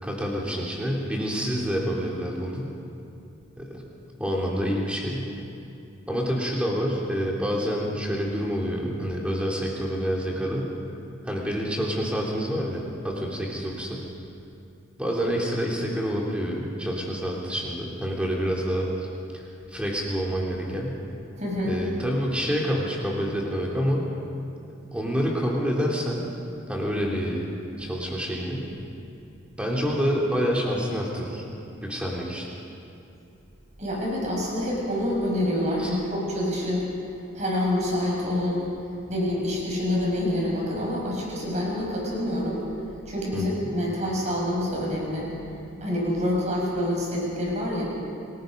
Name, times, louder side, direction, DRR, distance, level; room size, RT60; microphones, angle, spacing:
voice 1, 0.0-2.7 3.6-3.8 4.2-5.3 6.1-10.7 11.2-14.0 15.0-19.1 19.3-21.0 21.6-24.1 24.9-26.3 26.7-27.4 27.8-28.7 29.6-31.5 31.8-32.5 35.8-36.0 43.3-43.6, equal, 5° right, -3 dB, 3.3 m, -27 dB
voice 2, 21.4-21.8 33.8-36.9 37.3-38.7 39.1-42.7 43.1-45.3 45.8-47.8, left 1 dB, 35° right, -3 dB, 6.4 m, -27 dB
29.0 x 19.5 x 5.3 m, 2.7 s
head